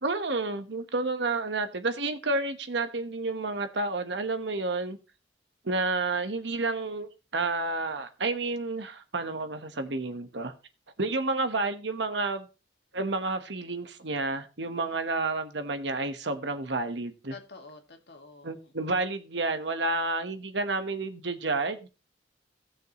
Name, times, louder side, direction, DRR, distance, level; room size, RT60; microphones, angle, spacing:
voice 1, 0.0-5.0 5.6-10.5 11.0-12.5 12.9-17.3 18.4-21.9, right 3 dB, 80° right, 1.2 m, -30 dB
voice 2, 17.3-19.0, left 3 dB, 65° left, 2.0 m, -49 dB
18.0 x 6.4 x 3.0 m
head